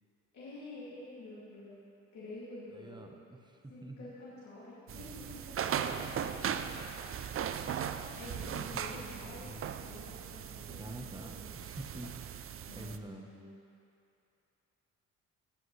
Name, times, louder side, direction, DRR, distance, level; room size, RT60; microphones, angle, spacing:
voice 1, 0.3-1.9 2.1-3.1 3.7-6.7 8.1-11.6 12.7-13.6, left 2 dB, 65° left, -9 dB, 2.5 m, -49 dB
voice 2, 2.7-4.1 8.2-9.7 10.8-13.3, right 1 dB, 15° right, 3 dB, 1.0 m, -47 dB
sound 1, 4.9-13.0, right 8 dB, 45° right, 0.5 m, -38 dB
17.5 x 7.7 x 3.3 m, 2.7 s
cardioid pair, 90°, 30 cm